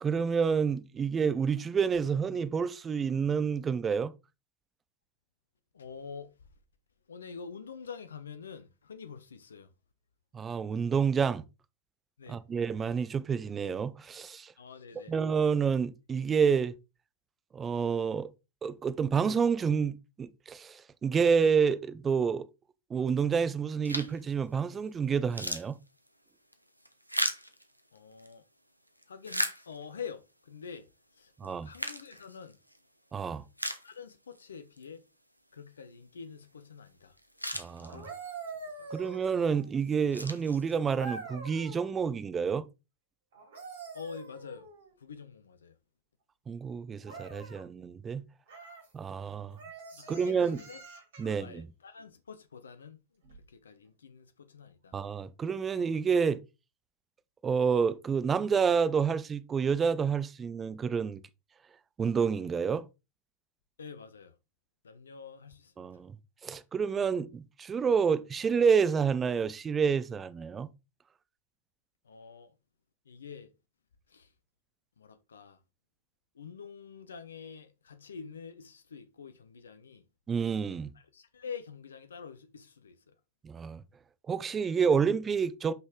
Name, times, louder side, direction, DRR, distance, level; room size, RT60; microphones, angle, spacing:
voice 1, 0.0-4.1 10.3-11.5 12.3-14.5 15.1-16.7 17.5-18.3 18.6-22.5 22.9-25.8 31.4-31.7 33.1-33.4 37.5-38.0 38.9-42.6 46.5-48.3 48.9-49.6 50.1-50.6 51.2-51.7 54.9-56.4 57.4-61.2 62.0-62.9 65.8-66.1 66.4-70.7 80.3-80.9 83.4-83.8 84.3-85.7, right 6 dB, 20° right, 0.6 m, -29 dB
voice 2, 5.7-6.3 7.1-9.7 12.2-12.4 14.6-15.1 27.9-28.4 29.1-30.9 31.2-32.6 33.8-35.0 35.5-37.2 37.8-38.2 38.8-38.9 43.9-44.7 45.0-45.7 49.9-50.8 51.2-53.0 53.5-55.0 63.8-64.3 64.8-65.9 72.0-72.5 73.1-73.5 74.1-74.3 75.0-75.6 76.3-80.0 80.9-83.1, left 6 dB, 70° left, 0.7 m, -46 dB
sound 1, 23.8-24.3 24.8-24.9 25.2-28.3 28.9-30.1 30.7-30.8 31.4-32.8 33.2-33.3 33.6-34.4 34.8-34.9 36.9-37.0 37.2-38.3 38.9-39.3 39.8-41.1, equal, 90° right, 0.9 m, -37 dB
sound 2, 37.8-39.8 40.9-41.9 43.3-44.9 47.0-47.6 48.5-48.9 49.6-51.4 53.2-53.4, right 4 dB, 60° right, 3.3 m, -45 dB
5.8 x 5.4 x 3.7 m
figure-of-eight pair, 90°, 0 cm